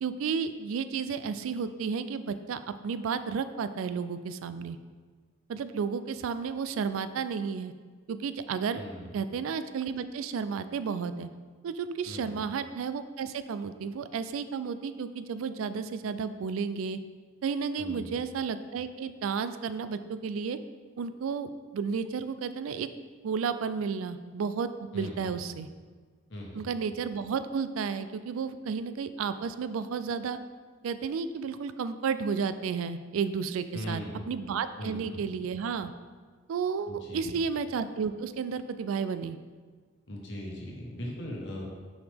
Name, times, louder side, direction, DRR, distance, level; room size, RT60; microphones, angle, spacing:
voice 1, 0.0-4.8 5.5-7.7 8.1-8.8 9.1-11.3 11.6-17.0 17.4-20.6 21.0-22.9 23.2-25.7 26.5-30.4 30.8-35.9 36.5-39.4, right 6 dB, 85° right, 12 dB, 0.3 m, -32 dB
voice 2, 8.7-9.1 12.0-12.4 17.8-18.2 24.9-25.3 26.3-26.6 33.7-34.3 34.8-35.3 36.9-37.4 40.1-41.6, equal, 60° left, -1 dB, 1.2 m, -39 dB
6.3 x 5.0 x 3.4 m, 1.5 s
head